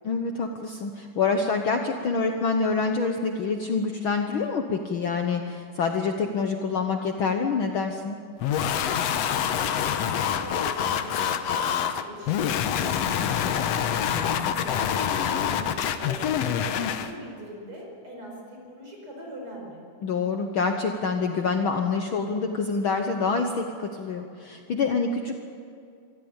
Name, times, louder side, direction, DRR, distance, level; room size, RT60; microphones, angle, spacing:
voice 1, 0.0-8.2 14.1-14.5 20.0-25.3, left 4 dB, 85° left, 4 dB, 1.1 m, -26 dB
sound 1, 8.4-17.1, left 8 dB, 70° left, 1.6 m, -26 dB
voice 2, 10.3-14.0 14.5-19.8, equal, 40° right, 0 dB, 5.8 m, -41 dB
24.5 x 14.5 x 8.8 m, 2.4 s
omnidirectional pair, 3.8 m